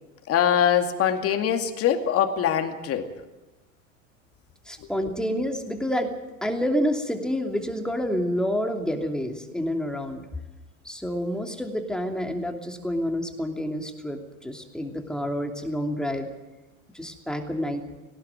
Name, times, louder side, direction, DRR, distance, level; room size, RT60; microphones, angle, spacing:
voice 1, 0.3-3.1 4.8-4.9, left 9 dB, 35° left, 6 dB, 2.4 m, -23 dB
voice 2, 4.7-6.1 6.4-10.2 10.8-16.3 16.9-17.8, equal, ahead, 3 dB, 2.8 m, -28 dB
18.5 x 17.5 x 9.2 m, 1.1 s
hypercardioid pair, 90°, 41 cm